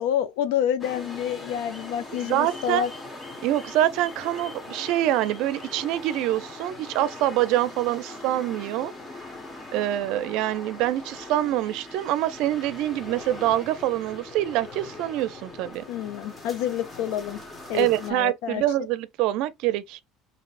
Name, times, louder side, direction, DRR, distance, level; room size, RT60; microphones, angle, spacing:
voice 1, 0.0-2.9 15.9-17.4 17.7-18.6, left 10 dB, 80° left, 0.6 m, -28 dB
sound 1, 0.8-18.1, left 2 dB, 20° left, 1.0 m, -41 dB
voice 2, 2.2-2.8 3.4-8.9 9.7-15.8 17.7-20.0, right 14 dB, 70° right, 0.5 m, -25 dB
5.2 x 2.8 x 2.5 m
cardioid pair, 125°, 0 cm